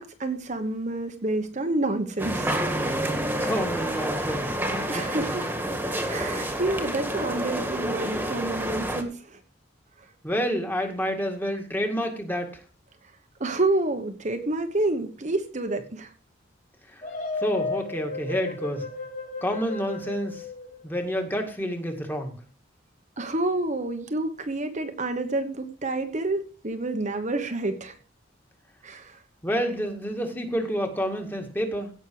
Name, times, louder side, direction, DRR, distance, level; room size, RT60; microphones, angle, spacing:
voice 1, 0.0-2.6 4.9-5.7 6.1-9.4 10.0-10.1 13.4-16.1 23.2-28.0 28.8-29.2, right 2 dB, 40° right, 7 dB, 1.2 m, -29 dB
sound 1, 2.2-9.0, right 1 dB, 10° right, 1.9 m, -28 dB
voice 2, 3.4-5.0 10.2-12.5 16.9-17.0 17.4-18.9 19.4-20.5 20.8-22.3 29.4-31.9, equal, 10° left, 4 dB, 2.1 m, -29 dB
sound 2, 17.0-21.2, left 4 dB, 40° left, 3.4 m, -34 dB
16.5 x 6.5 x 4.7 m, 0.36 s
head